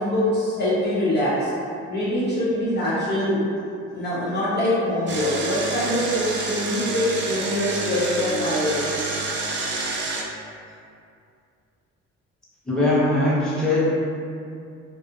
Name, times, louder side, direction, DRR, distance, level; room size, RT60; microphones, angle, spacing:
voice 1, 0.0-1.5 1.9-3.4 3.9-8.9, left 1 dB, 35° left, -9 dB, 0.5 m, -24 dB
Engine, 5.1-10.2, right 3 dB, 40° right, 0.4 m, -28 dB
voice 2, 12.6-13.8, left 2 dB, ahead, -10 dB, 0.8 m, -20 dB
2.3 x 2.1 x 2.7 m, 2.4 s
cardioid pair, 90°, 30 cm